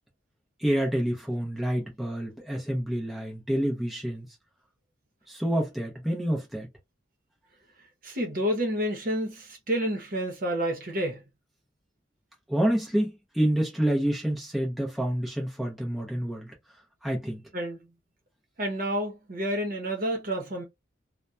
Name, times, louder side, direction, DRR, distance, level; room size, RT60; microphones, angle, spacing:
voice 1, 0.6-4.3 5.3-6.7 12.5-16.5 17.0-17.4, right 1 dB, ahead, 0.7 m, -28 dB
voice 2, 8.0-11.2 17.5-17.9 18.6-20.6, equal, 45° right, 0.9 m, -29 dB
2.9 x 2.2 x 2.3 m
head